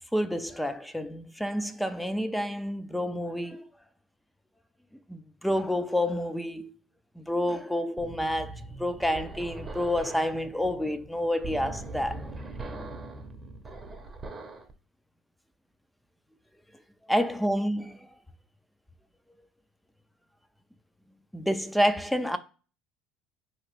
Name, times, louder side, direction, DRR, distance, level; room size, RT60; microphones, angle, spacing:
voice 1, 0.1-3.7 5.1-6.7 7.2-12.2 17.1-18.1 21.3-22.4, equal, 5° left, 0.4 m, -29 dB
sound 1, 8.0-14.7, right 2 dB, 25° right, 0.7 m, -41 dB
4.9 x 3.0 x 3.1 m
supercardioid pair, 80°, 0 cm